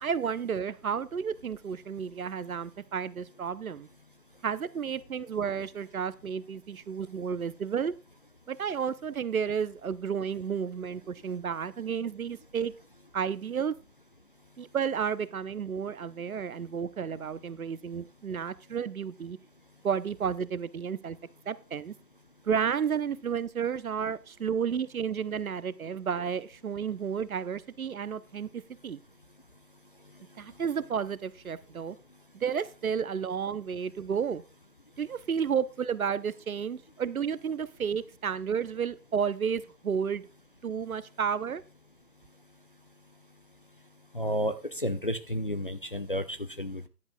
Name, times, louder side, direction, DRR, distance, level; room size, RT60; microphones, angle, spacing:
voice 1, 0.0-3.9 4.4-7.9 8.5-12.7 13.1-13.7 14.6-19.4 19.8-21.2 21.5-21.9 22.5-29.0 30.4-32.0 32.3-34.4 35.0-40.2 40.6-41.6, right 7 dB, 60° right, 16 dB, 0.8 m, -32 dB
voice 2, 44.1-46.9, equal, 35° left, 8 dB, 0.5 m, -31 dB
14.5 x 10.5 x 2.3 m, 0.32 s
figure-of-eight pair, 140°, 49 cm